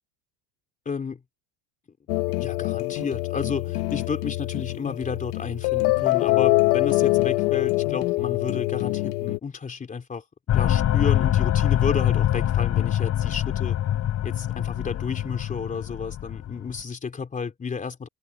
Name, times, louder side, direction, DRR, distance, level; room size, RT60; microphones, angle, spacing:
voice 1, 0.9-1.2 2.4-10.2 10.5-13.8 14.2-18.1, left 5 dB, 15° left, 3.5 m, -32 dB
sound 1, 2.1-9.4, left 21 dB, 75° left, 1.6 m, -24 dB
sound 2, 10.5-16.8, left 11 dB, 35° left, 5.6 m, -24 dB
cardioid pair, 165°, 46 cm